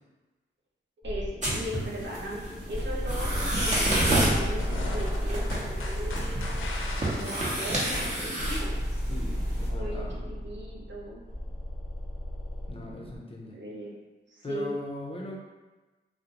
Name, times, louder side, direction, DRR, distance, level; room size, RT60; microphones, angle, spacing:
sound 1, 1.0-13.2, equal, ahead, 0.9 m, -33 dB
voice 1, 1.0-2.4 2.7-6.6 6.9-8.8 9.7-11.2 13.5-13.9 14.3-14.8, right 1 dB, 65° right, -3 dB, 0.7 m, -38 dB
sound 2, 1.4-9.7, right 1 dB, 35° right, 0.8 m, -31 dB
sound 3, 3.4-8.6, left 2 dB, 85° left, 0.5 m, -39 dB
voice 2, 9.1-10.2 12.7-13.6 14.4-15.4, left 2 dB, 30° left, -2 dB, 0.5 m, -39 dB
2.4 x 2.0 x 2.9 m, 1.2 s
cardioid pair, 60°, 20 cm